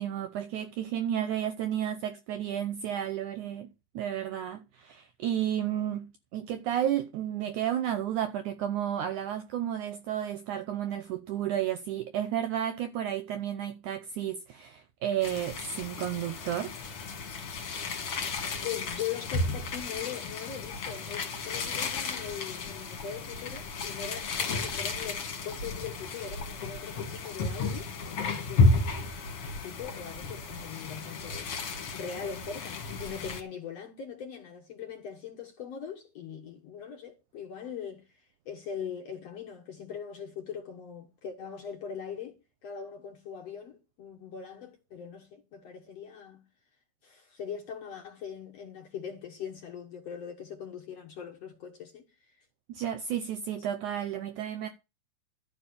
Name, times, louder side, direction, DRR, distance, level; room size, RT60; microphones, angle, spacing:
voice 1, 0.0-3.7 4.0-16.7 52.7-54.7, right 10 dB, 75° right, 1.8 m, -32 dB
sound 1, 15.2-33.4, left 3 dB, 45° left, 2.4 m, -32 dB
voice 2, 18.6-28.6 29.6-31.7 31.9-38.1 38.5-42.4 42.6-46.4 47.0-52.4, left 7 dB, 60° left, 1.8 m, -41 dB
12.5 x 5.6 x 8.4 m
omnidirectional pair, 4.4 m